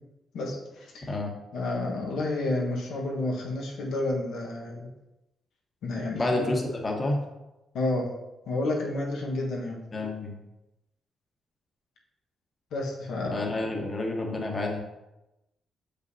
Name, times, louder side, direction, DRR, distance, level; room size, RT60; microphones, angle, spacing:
voice 1, 0.3-1.1 1.5-4.9 5.8-6.6 7.7-8.1 8.4-9.8 12.7-13.6, left 2 dB, 85° left, -2 dB, 1.3 m, -30 dB
voice 2, 6.1-7.2 9.9-10.3 13.3-14.8, left 2 dB, 25° left, 0 dB, 1.2 m, -29 dB
6.7 x 5.3 x 2.8 m, 0.95 s
cardioid pair, 115°, 0 cm